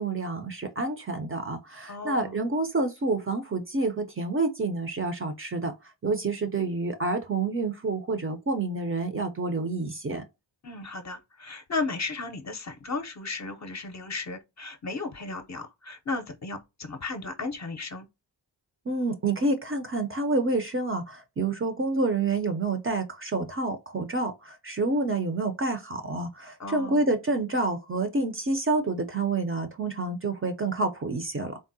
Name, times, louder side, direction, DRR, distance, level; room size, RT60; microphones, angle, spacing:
voice 1, 0.0-5.7 6.0-10.2 18.9-31.6, right 3 dB, 30° right, 0.5 m, -28 dB
voice 2, 1.9-2.4 10.6-18.1 26.6-27.0, left 3 dB, 40° left, 0.6 m, -35 dB
3.6 x 2.0 x 2.6 m
wide cardioid pair, 70°, 45 cm